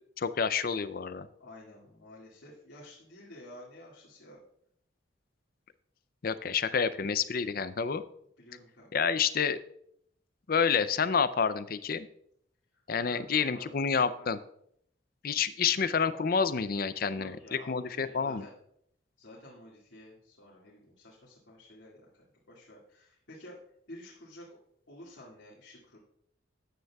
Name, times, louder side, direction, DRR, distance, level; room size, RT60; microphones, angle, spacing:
voice 1, 0.2-1.3 6.2-8.0 8.9-9.6 10.5-12.1 12.9-14.4 15.2-17.4 17.7-18.4, left 6 dB, 45° left, 13 dB, 0.5 m, -28 dB
voice 2, 1.4-4.4 8.4-8.9 13.1-14.3 17.1-18.5 19.2-23.6 23.9-24.6 24.9-26.0, left 1 dB, 70° left, -6 dB, 2.1 m, -51 dB
13.0 x 9.1 x 2.3 m, 0.71 s
head